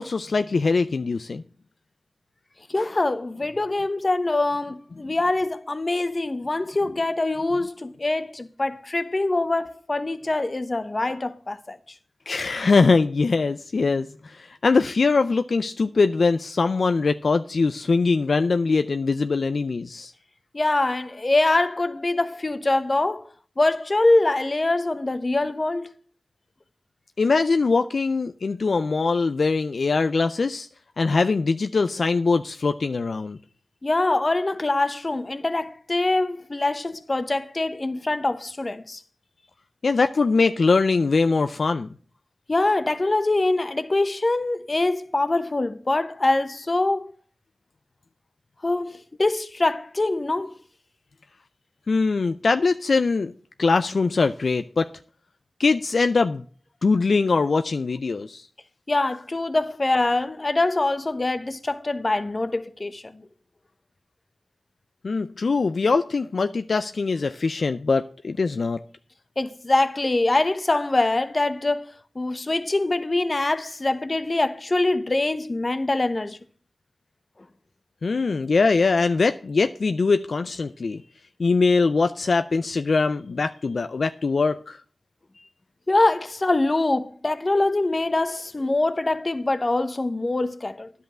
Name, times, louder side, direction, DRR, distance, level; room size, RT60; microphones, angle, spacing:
voice 1, 0.0-1.4 12.3-20.1 27.2-30.7 31.0-33.4 39.8-41.9 51.9-53.3 53.6-54.9 55.6-56.4 56.8-58.5 65.0-68.8 78.0-81.0 81.4-84.8, left 4 dB, 75° left, 0.4 m, -22 dB
voice 2, 2.7-11.8 20.5-23.3 23.6-25.9 33.8-39.0 42.5-47.1 48.6-50.5 58.9-63.3 69.4-76.4 85.9-90.9, left 2 dB, 40° left, 1.0 m, -24 dB
10.5 x 5.5 x 7.4 m
cardioid pair, 45°, 0 cm